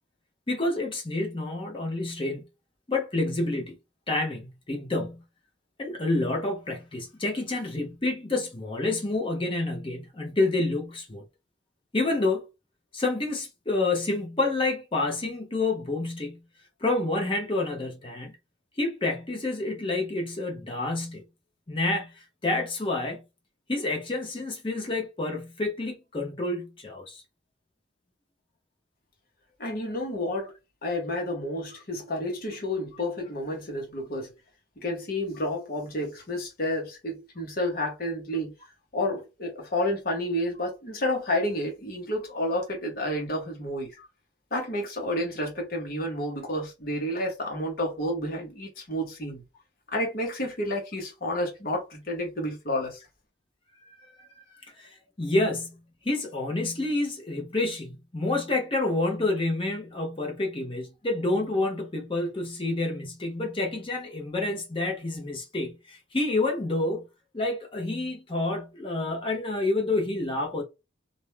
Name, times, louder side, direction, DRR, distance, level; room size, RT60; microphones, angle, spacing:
voice 1, 0.5-2.4 2.9-3.8 4.1-5.2 5.8-11.2 11.9-12.5 12.9-16.4 16.8-18.4 18.8-21.2 21.7-23.2 23.7-27.2 35.4-35.5 44.0-44.1 53.8-54.3 54.8-55.8 56.0-67.0 67.3-70.6, left 2 dB, 25° left, 0.7 m, -28 dB
voice 2, 29.6-30.5 30.8-34.3 34.8-38.5 38.9-43.9 44.5-49.4 49.9-53.0, left 1 dB, 50° left, 1.0 m, -30 dB
2.6 x 2.1 x 3.1 m
head